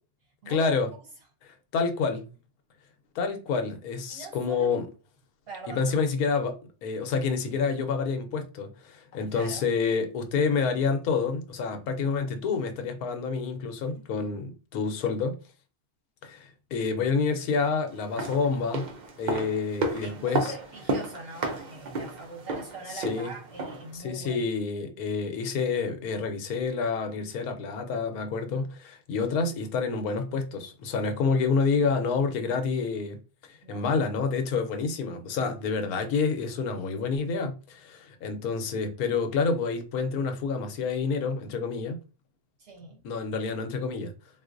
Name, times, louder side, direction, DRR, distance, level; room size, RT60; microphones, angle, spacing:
voice 1, 0.5-0.9 1.4-2.2 3.1-4.9 5.7-6.6 6.8-15.4 16.2-18.9 19.2-20.5 22.9-23.3 23.9-33.2 33.5-42.0 43.0-44.1, left 5 dB, 90° left, 1.2 m, -28 dB
voice 2, 4.1-4.7 5.5-6.0 9.3-9.7 13.9-14.3 20.0-24.4 33.6-34.1 42.6-43.0, right 3 dB, 50° right, 0.9 m, -42 dB
sound 1, 18.0-24.0 24.2-24.3, right 2 dB, 75° right, 0.4 m, -33 dB
3.9 x 2.5 x 2.5 m
omnidirectional pair, 1.5 m